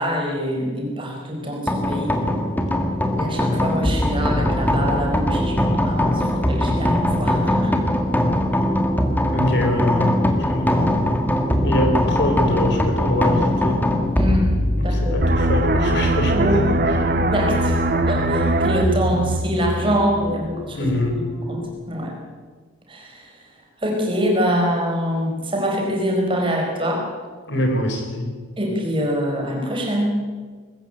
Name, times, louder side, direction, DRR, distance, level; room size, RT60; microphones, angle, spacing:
voice 1, 0.0-2.1 3.2-7.8 14.2-14.5 14.8-15.2 16.3-16.6 17.1-17.8 18.0-20.9 21.5-22.1 22.9-23.4 23.8-27.0 28.6-30.1, equal, 25° right, 0 dB, 4.8 m, -24 dB
sound 1, 1.7-18.9, left 1 dB, 10° left, 1.8 m, -21 dB
voice 2, 9.3-10.1 10.5-10.9 11.6-13.8 14.8-17.1 20.7-21.2 27.5-28.3, left 1 dB, 55° left, 4 dB, 4.2 m, -24 dB
sound 2, 10.2-21.7, equal, 35° left, 3.2 m, -38 dB
sound 3, 15.2-20.6 20.9-21.2, right 1 dB, 45° right, 1.6 m, -21 dB
21.5 x 14.5 x 8.9 m, 1.5 s
head